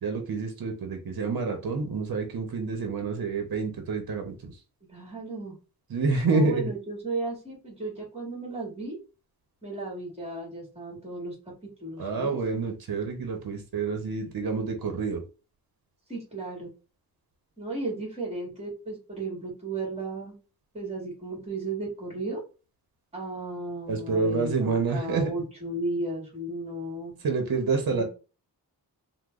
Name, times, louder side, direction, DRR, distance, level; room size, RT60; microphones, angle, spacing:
voice 1, 0.0-4.5 5.9-6.7 12.0-15.2 23.9-25.3 27.2-28.0, right 4 dB, 65° right, 4 dB, 0.8 m, -28 dB
voice 2, 4.9-5.6 6.3-9.0 9.6-11.3 11.8-12.3 16.1-16.7 17.6-20.3 20.7-22.4 23.1-27.1 27.9-28.0, right 2 dB, 15° right, -2 dB, 1.7 m, -34 dB
3.0 x 2.2 x 3.6 m, 0.33 s
wide cardioid pair, 120°, 38 cm